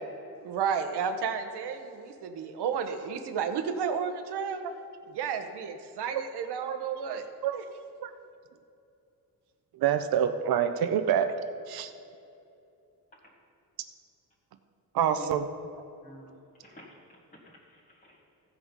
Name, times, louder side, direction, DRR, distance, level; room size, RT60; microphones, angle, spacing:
voice 1, 0.4-4.6 5.1-7.3 7.5-7.6, right 6 dB, 90° right, 6 dB, 1.0 m, -32 dB
voice 2, 9.8-11.3 11.7-11.9 14.9-15.4, right 9 dB, 65° right, 8 dB, 0.6 m, -26 dB
voice 3, 16.0-18.2, equal, 20° left, -3 dB, 1.4 m, -51 dB
15.5 x 6.2 x 5.2 m, 2.7 s
cardioid pair, 135°, 39 cm